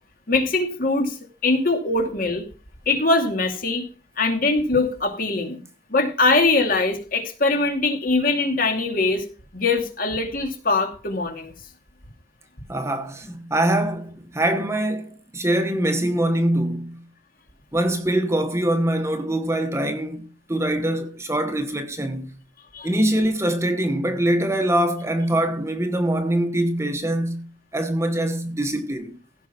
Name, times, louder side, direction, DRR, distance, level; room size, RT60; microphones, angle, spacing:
voice 1, 0.3-2.4 2.9-3.8 4.2-5.6 5.9-9.3 9.5-11.5 22.7-22.9, left 3 dB, 45° left, 2.4 m, -22 dB
voice 2, 12.7-17.1 17.7-22.3 22.8-29.1, right 1 dB, 15° right, 1.1 m, -23 dB
16.0 x 5.5 x 5.9 m
head